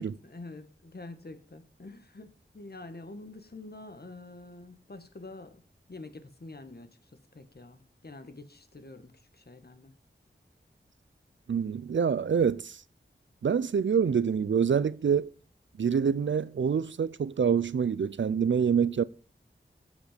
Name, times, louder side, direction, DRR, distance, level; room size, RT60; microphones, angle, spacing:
voice 1, 0.0-5.6 5.9-9.9, left 2 dB, 50° left, 1.5 m, -47 dB
voice 2, 11.5-12.8 13.4-15.3 15.8-19.0, right 7 dB, 65° right, 0.5 m, -26 dB
15.0 x 5.3 x 5.1 m
wide cardioid pair, 50°, 20 cm